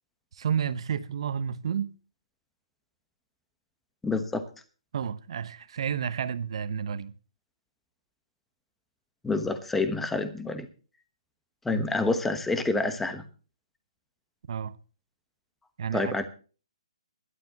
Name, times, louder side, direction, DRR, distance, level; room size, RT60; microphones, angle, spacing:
voice 1, 0.3-1.9 4.9-7.1 11.7-11.8 14.5-14.8 15.8-16.3, right 7 dB, 55° right, 1.1 m, -31 dB
voice 2, 4.0-4.4 9.2-10.7 11.6-13.2 15.9-16.3, left 3 dB, 5° left, 1.1 m, -28 dB
21.0 x 11.5 x 3.0 m
hypercardioid pair, 155°, 3 cm